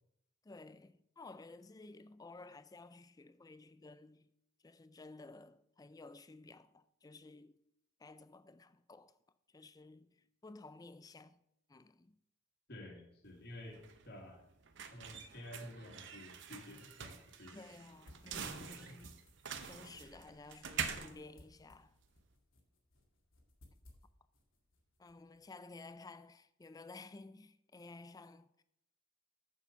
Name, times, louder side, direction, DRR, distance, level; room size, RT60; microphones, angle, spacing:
voice 1, 0.4-4.3 4.6-7.6 8.0-9.2 9.5-11.4 11.7-12.2 17.5-19.2 19.6-22.0 25.0-28.6, left 3 dB, 20° left, 0.4 m, -54 dB
voice 2, 12.7-14.4 14.9-17.7 18.4-18.9, left 1 dB, 55° left, 2.2 m, -51 dB
sound 1, 13.2-22.3, right 7 dB, 60° right, 0.8 m, -46 dB
sound 2, 17.8-26.2, left 1 dB, 90° left, 2.1 m, -67 dB
7.0 x 6.9 x 5.7 m
head